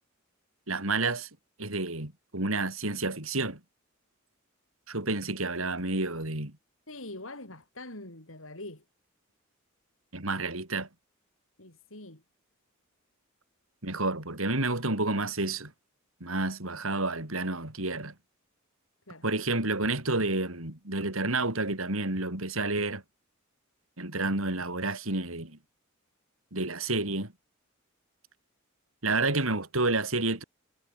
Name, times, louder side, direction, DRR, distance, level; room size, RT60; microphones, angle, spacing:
voice 1, 0.7-1.3 1.6-3.6 4.9-6.5 10.1-10.9 13.8-15.7 16.2-18.1 19.2-23.0 24.0-25.6 26.5-27.3 29.0-30.4, right 2 dB, 80° right, 5.1 m, -30 dB
voice 2, 6.9-8.8 11.6-12.2 19.1-19.3, left 2 dB, 70° left, 7.8 m, -44 dB
head